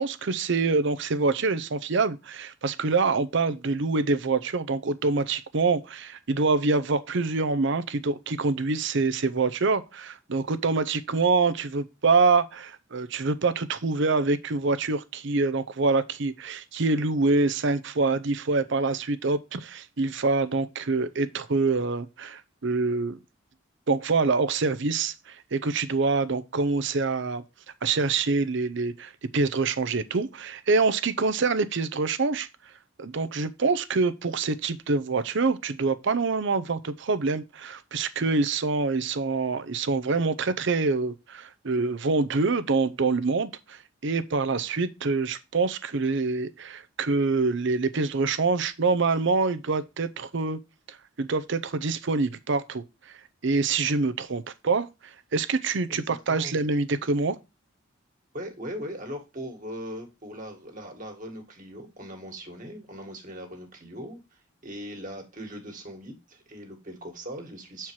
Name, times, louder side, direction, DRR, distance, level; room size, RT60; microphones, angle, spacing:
voice 1, 0.0-23.2 23.9-27.4 27.8-32.5 33.0-50.6 50.9-52.8 53.4-54.9 55.3-57.4, right 3 dB, 60° right, 0.7 m, -25 dB
voice 2, 55.9-56.5 58.3-67.9, equal, 40° right, 1.9 m, -40 dB
7.4 x 4.5 x 4.6 m
head